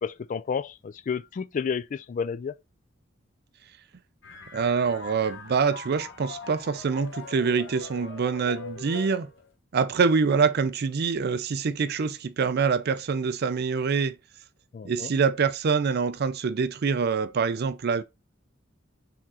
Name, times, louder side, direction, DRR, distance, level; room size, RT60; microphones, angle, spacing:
voice 1, 0.0-2.5 14.7-15.1, left 6 dB, 40° left, 0.3 m, -31 dB
sound 1, 4.2-9.5, left 4 dB, 70° left, 1.1 m, -42 dB
voice 2, 4.5-9.3 9.7-14.1 14.8-18.0, right 5 dB, 55° right, 0.4 m, -25 dB
4.6 x 3.6 x 2.8 m
head